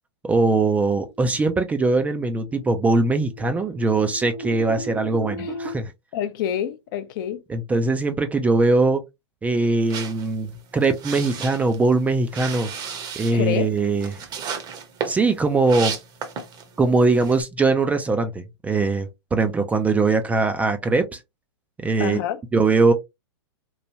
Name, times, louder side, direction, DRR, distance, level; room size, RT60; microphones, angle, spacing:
voice 1, 0.2-5.9 7.5-9.0 9.4-12.7 13.2-14.2 15.1-16.0 16.8-21.2 21.8-22.2 22.5-22.9, right 3 dB, 10° right, 0.3 m, -21 dB
sound 1, 1.0-5.7, right 1 dB, 80° right, 1.1 m, -36 dB
voice 2, 6.1-7.4 13.3-13.7 22.0-22.4, left 10 dB, 50° left, 0.5 m, -27 dB
sound 2, 9.9-16.7 17.1-17.4, right 6 dB, 30° right, 0.7 m, -34 dB
3.1 x 2.2 x 2.6 m
hypercardioid pair, 115°, 14 cm